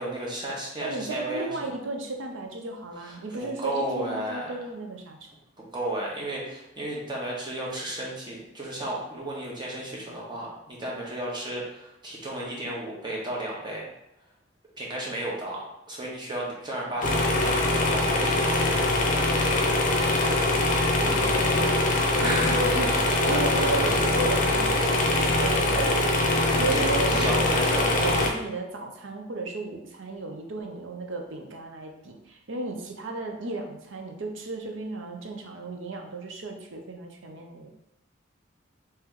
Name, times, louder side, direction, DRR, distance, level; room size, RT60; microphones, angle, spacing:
voice 1, 0.0-1.5 3.0-4.5 5.6-13.9 14.8-18.8 22.2-22.6 23.6-23.7 26.5-26.9 27.2-28.2, right 1 dB, 25° right, -3 dB, 0.9 m, -33 dB
voice 2, 0.8-5.3 21.0-21.8 22.2-26.1 26.5-37.7, right 2 dB, 80° right, 3 dB, 0.6 m, -34 dB
sound 1, 17.0-28.3, left 2 dB, 40° left, 0.6 m, -23 dB
3.1 x 3.0 x 3.6 m, 0.85 s
head